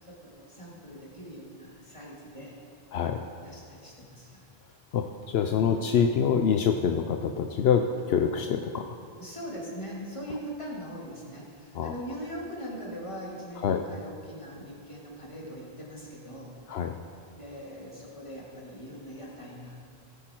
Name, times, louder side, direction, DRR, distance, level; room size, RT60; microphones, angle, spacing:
voice 1, 0.0-2.6 3.4-4.5 5.4-6.0 9.2-16.5 17.3-19.8, equal, 30° left, -4 dB, 2.6 m, -41 dB
voice 2, 4.9-9.0 11.7-11.9 13.6-13.8 16.7-17.0, left 7 dB, 75° left, 5 dB, 0.9 m, -26 dB
17.5 x 8.6 x 4.5 m, 2.4 s
omnidirectional pair, 1.1 m